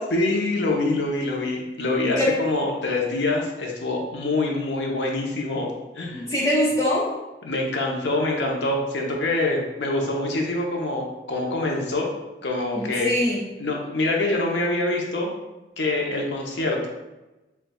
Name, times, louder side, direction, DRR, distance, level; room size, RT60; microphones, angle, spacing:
voice 1, 0.1-5.7 6.0-6.2 7.4-12.1 12.4-13.1 13.6-15.3 15.8-16.9, left 2 dB, 85° left, 0 dB, 0.7 m, -25 dB
voice 2, 2.0-2.4 6.1-7.1 12.7-13.4, left 1 dB, 20° left, -5 dB, 1.1 m, -23 dB
6.8 x 2.3 x 2.3 m, 1.1 s
head